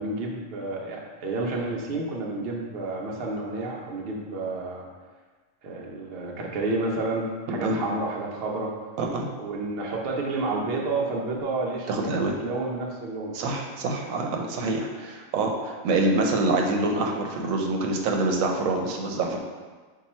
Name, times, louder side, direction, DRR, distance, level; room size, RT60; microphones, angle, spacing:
voice 1, 0.0-4.9 5.6-8.7 9.4-13.6, right 2 dB, 55° right, -1 dB, 0.8 m, -30 dB
voice 2, 7.5-7.8 9.0-9.3 11.9-12.3 13.3-19.4, right 2 dB, 90° right, 1 dB, 1.0 m, -26 dB
5.7 x 2.2 x 4.2 m, 1.4 s
omnidirectional pair, 1.4 m